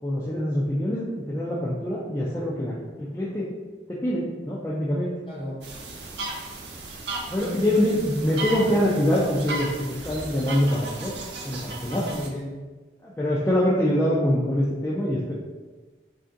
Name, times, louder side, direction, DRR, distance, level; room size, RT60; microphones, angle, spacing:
voice 1, 0.0-3.5 3.9-5.1 7.3-11.2 11.4-12.0 13.0-15.3, equal, 15° left, -6 dB, 0.4 m, -24 dB
voice 2, 5.3-5.6 7.4-7.8 8.1-8.8 11.9-12.5, equal, 30° left, -5 dB, 0.9 m, -35 dB
sweden-forrest-goose-screaming, 5.6-12.3, right 2 dB, 80° right, 0.6 m, -35 dB
3.3 x 2.6 x 3.7 m, 1.3 s
head